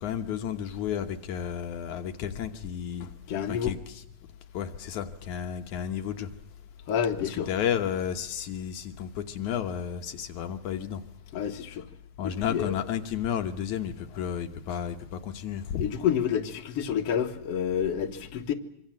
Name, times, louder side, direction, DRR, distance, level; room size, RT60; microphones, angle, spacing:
voice 1, 0.0-3.1 3.5-4.0 4.5-6.3 7.2-11.0 12.2-15.8, left 9 dB, 80° left, 2.5 m, -32 dB
voice 2, 3.3-3.7 6.9-7.5 11.3-11.9 12.2-12.8 15.8-18.5, left 8 dB, 60° left, 2.4 m, -29 dB
25.5 x 24.5 x 7.5 m
omnidirectional pair, 3.4 m